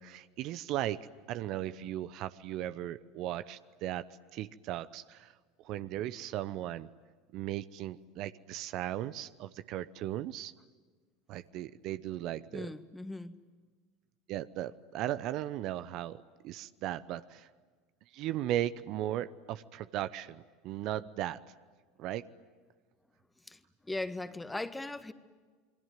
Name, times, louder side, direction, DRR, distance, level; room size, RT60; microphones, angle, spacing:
voice 1, 0.0-4.1 4.3-5.3 5.6-6.9 7.3-10.5 11.3-12.7 14.3-17.5 18.1-21.4 22.0-22.2, right 13 dB, 50° right, 14 dB, 0.8 m, -37 dB
voice 2, 12.5-13.4 23.5-25.1, left 2 dB, 10° left, 11 dB, 1.6 m, -39 dB
28.0 x 23.0 x 9.1 m, 1.5 s
figure-of-eight pair, 75°, 0 cm